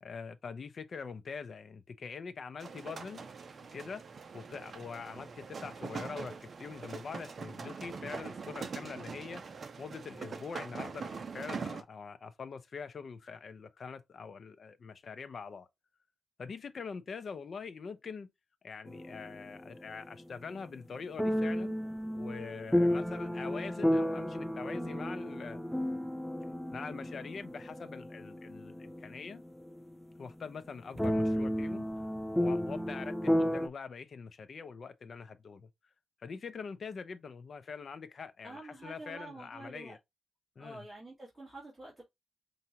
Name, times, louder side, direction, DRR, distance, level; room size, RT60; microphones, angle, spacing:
voice 1, 0.0-3.3 3.7-4.0 4.3-9.4 9.8-15.7 16.4-18.3 18.6-21.8 22.1-25.6 26.7-29.4 30.2-31.9 32.4-35.7 36.2-40.0 40.6-40.8, left 5 dB, 50° left, 0.6 m, -44 dB
sound 1, 2.6-11.8, right 5 dB, 50° right, 0.6 m, -43 dB
sound 2, 18.9-20.2 21.2-29.9 30.3-30.4 31.0-33.7, equal, ahead, 0.3 m, -33 dB
voice 2, 38.4-40.0 40.6-42.0, right 2 dB, 15° right, 2.2 m, -47 dB
5.6 x 2.7 x 2.8 m
wide cardioid pair, 130°, 0 cm